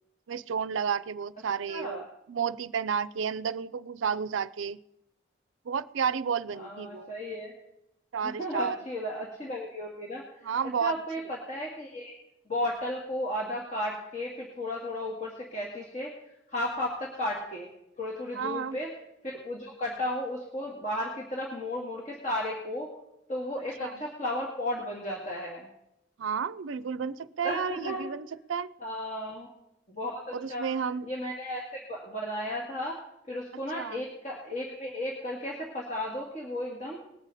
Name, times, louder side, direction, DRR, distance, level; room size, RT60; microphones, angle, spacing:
voice 1, 0.3-4.8 5.7-7.1 8.1-8.8 10.4-11.0 18.4-18.8 23.8-23.9 26.2-28.7 30.3-31.1 33.7-34.0, right 6 dB, 85° right, 17 dB, 0.5 m, -31 dB
voice 2, 1.7-2.0 6.5-7.5 8.2-10.6 10.8-12.1 12.5-16.1 16.5-17.7 18.0-18.9 19.2-22.9 23.3-25.7 27.4-28.1 28.8-29.5 29.9-30.7 31.0-33.0 33.3-37.0, left 1 dB, 35° left, -3 dB, 2.1 m, -34 dB
20.0 x 8.1 x 4.1 m, 0.82 s
head